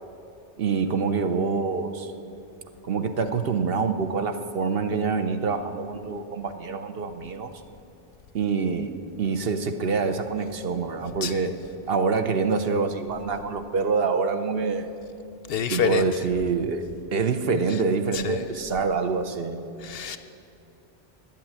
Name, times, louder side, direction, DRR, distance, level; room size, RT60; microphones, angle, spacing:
voice 1, 0.6-2.1 2.8-7.6 8.3-8.9 9.2-11.5 11.9-14.9 15.7-16.8 17.1-19.7, right 4 dB, 60° right, 8 dB, 0.9 m, -26 dB
voice 2, 15.5-16.1 18.1-18.4 19.8-20.2, left 8 dB, 65° left, 11 dB, 0.7 m, -27 dB
10.5 x 8.8 x 8.7 m, 2.7 s
omnidirectional pair, 1.2 m